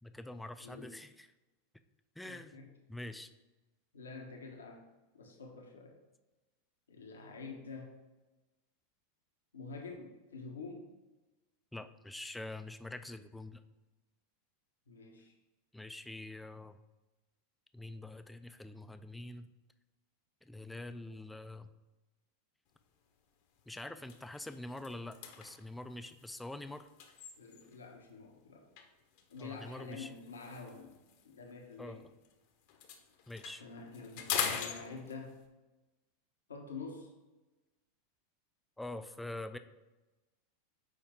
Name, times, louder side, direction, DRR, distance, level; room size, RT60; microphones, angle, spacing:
voice 1, 0.0-1.3 2.2-2.6 2.9-3.3 11.7-13.6 15.7-16.8 17.7-19.5 20.4-21.7 23.7-26.9 29.4-30.1 31.8-32.1 33.3-33.6 38.8-39.6, left 2 dB, 5° left, 10 dB, 0.5 m, -45 dB
voice 2, 0.6-0.9 2.2-2.7 3.9-4.9 5.1-6.0 6.9-7.9 9.5-10.9 14.9-15.3 27.4-28.6 29.3-32.1 33.6-35.4 36.5-37.1, left 4 dB, 85° left, 1 dB, 1.2 m, -47 dB
sound 1, 22.8-23.0 23.5-23.6 24.0-27.9 28.8-32.3 32.6-35.5, left 8 dB, 60° left, 1.0 m, -42 dB
6.9 x 4.6 x 3.7 m, 1.1 s
hypercardioid pair, 95°, 0 cm